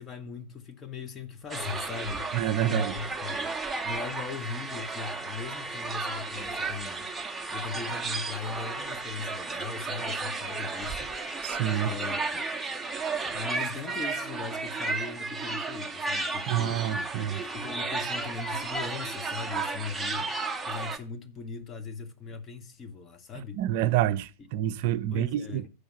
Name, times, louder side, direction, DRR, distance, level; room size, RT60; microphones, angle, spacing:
voice 1, 0.0-3.5 3.8-7.1 7.5-11.1 11.7-12.5 13.2-16.8 17.3-20.3 20.6-23.6 24.8-25.7, left 6 dB, 25° left, 0.8 m, -39 dB
sound 1, 1.5-21.0, right 3 dB, 10° right, 0.8 m, -33 dB
voice 2, 2.3-2.9 11.4-11.9 16.5-17.4 23.4-25.6, right 12 dB, 50° right, 0.5 m, -28 dB
6.5 x 5.4 x 7.1 m
figure-of-eight pair, 90°, 0 cm